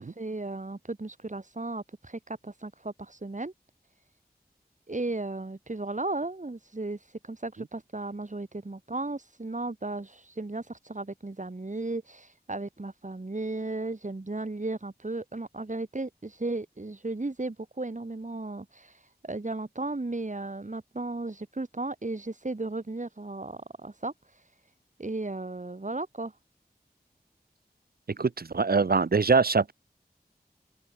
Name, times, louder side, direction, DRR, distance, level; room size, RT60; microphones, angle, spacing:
voice 1, 0.0-3.5 4.9-24.5 25.0-26.3, right 2 dB, 50° right, 2.7 m, -35 dB
voice 2, 28.2-29.7, right 4 dB, 70° right, 0.8 m, -23 dB
open air
wide cardioid pair, 50°, 17 cm